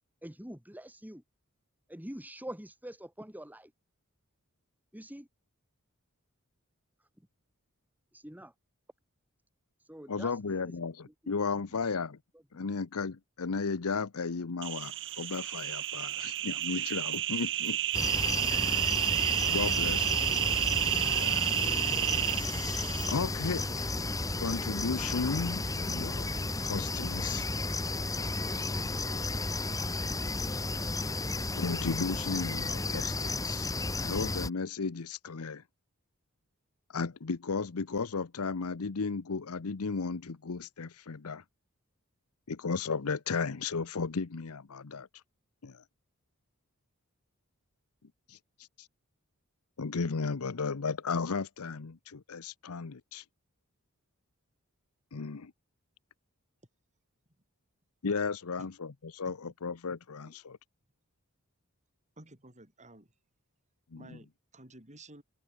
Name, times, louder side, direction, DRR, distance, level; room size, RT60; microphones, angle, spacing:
voice 1, 0.2-1.2 1.9-3.7 4.9-5.3 8.1-8.5 9.9-10.7, right 1 dB, 10° right, 2.4 m, -45 dB
voice 2, 10.1-12.2 12.5-17.8 19.5-20.7 21.2-21.4 23.1-23.9 24.4-26.3 26.6-27.5 31.5-33.7 34.0-35.6 36.9-41.4 42.5-45.1 45.6-45.8 48.3-48.4 49.8-53.2 55.1-55.5 58.0-60.6 63.9-64.2, left 4 dB, 80° left, 0.8 m, -34 dB
sound 1, 14.6-23.1, right 13 dB, 60° right, 1.5 m, -30 dB
sound 2, 17.9-34.5, left 2 dB, 15° left, 1.3 m, -33 dB
voice 3, 62.2-63.1 64.0-65.2, right 2 dB, 35° right, 7.5 m, -53 dB
head